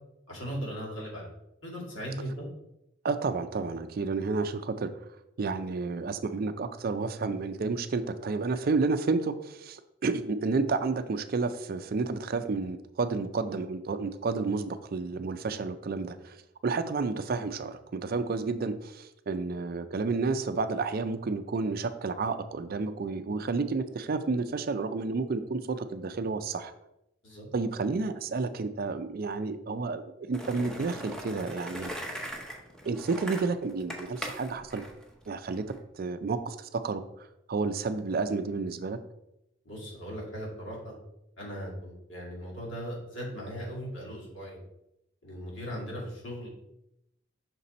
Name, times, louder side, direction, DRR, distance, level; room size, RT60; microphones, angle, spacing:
voice 1, 0.3-1.3 1.6-2.5 27.2-27.4 39.7-40.9 41.4-44.6 45.2-46.5, equal, 70° left, -3 dB, 2.1 m, -38 dB
voice 2, 3.0-4.9 5.4-16.4 16.6-26.7 27.5-31.9 32.9-34.8 35.3-35.6 36.0-37.0 37.5-39.0, right 4 dB, 50° right, 10 dB, 0.4 m, -31 dB
Skateboard, 30.3-35.8, equal, 5° left, 0.7 m, -40 dB
5.9 x 4.1 x 4.2 m, 0.85 s
head